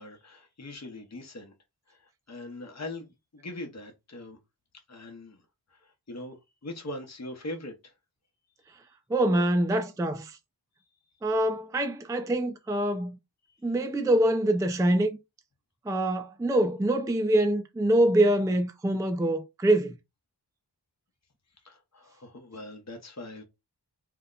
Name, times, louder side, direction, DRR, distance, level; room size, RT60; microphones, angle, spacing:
voice 1, 0.0-1.5 1.9-2.0 2.3-4.4 4.9-5.4 6.1-6.4 6.6-7.9 21.6-23.4, left 1 dB, 40° left, 0.9 m, -41 dB
voice 2, 9.1-10.4 11.2-13.2 13.6-15.2 15.9-19.9, right 1 dB, 10° right, 0.4 m, -25 dB
2.8 x 2.1 x 3.7 m
wide cardioid pair, 45°, 43 cm